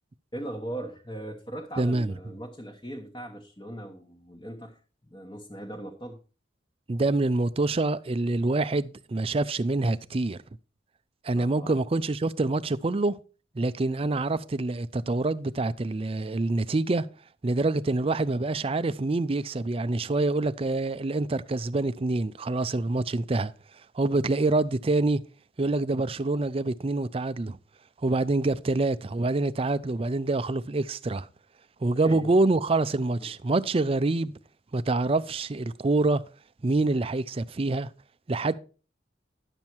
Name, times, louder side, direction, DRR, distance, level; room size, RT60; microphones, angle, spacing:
voice 1, 0.3-6.2 11.3-11.8 32.0-32.4 33.2-33.3, right 1 dB, 25° left, 1.1 m, -39 dB
voice 2, 1.8-2.1 6.9-10.4 11.2-13.2 13.6-17.1 17.4-23.5 23.9-25.2 25.6-27.6 28.0-31.3 31.8-34.3 34.7-36.2 36.6-37.9 38.3-38.5, right 2 dB, 30° right, 0.5 m, -26 dB
10.5 x 7.3 x 4.5 m
head